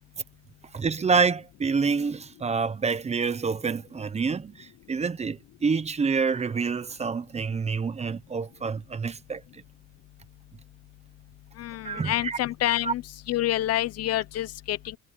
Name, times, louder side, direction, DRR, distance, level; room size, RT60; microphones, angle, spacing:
voice 1, 0.7-9.6 11.8-12.4 12.8-12.9, right 5 dB, 20° right, 1.1 m, -27 dB
voice 2, 11.6-13.0 13.3-15.0, left 14 dB, 55° left, 0.8 m, -27 dB
cardioid pair, 135°, 30 cm